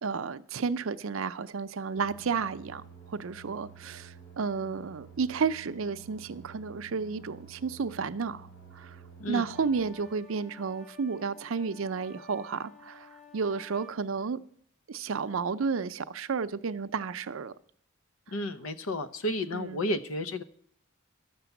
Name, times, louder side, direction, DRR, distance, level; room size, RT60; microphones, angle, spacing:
voice 1, 0.0-2.8 3.1-8.5 8.7-9.0 9.3-14.4 14.9-17.5 19.5-19.8, right 5 dB, 70° right, 0.5 m, -32 dB
sound 1, 2.0-9.9, right 5 dB, 65° left, 3.7 m, -51 dB
sound 2, 9.5-14.0, left 3 dB, 35° left, 1.5 m, -52 dB
voice 2, 18.3-20.4, left 1 dB, 80° left, 0.8 m, -32 dB
12.0 x 6.7 x 7.0 m
head